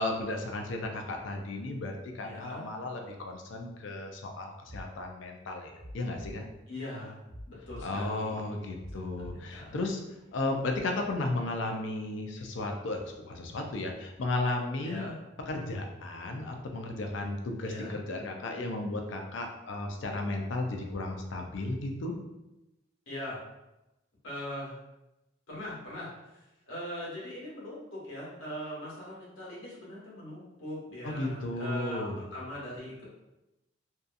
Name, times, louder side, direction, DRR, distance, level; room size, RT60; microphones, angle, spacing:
voice 1, 0.0-6.4 7.8-10.0 10.3-15.0 15.5-22.1 31.0-32.2, left 2 dB, 70° left, 2 dB, 0.4 m, -34 dB
voice 2, 2.2-2.6 6.7-7.2 7.4-8.5 8.9-9.8 14.8-15.1 17.6-18.0 23.1-23.4 24.2-24.7 25.5-33.1, left 1 dB, 90° left, -7 dB, 1.1 m, -41 dB
sound 1, 4.6-4.8 5.7-6.3 7.2-7.8 8.7-9.3, equal, 35° right, 0.8 m, -45 dB
2.7 x 2.3 x 2.5 m, 0.96 s
head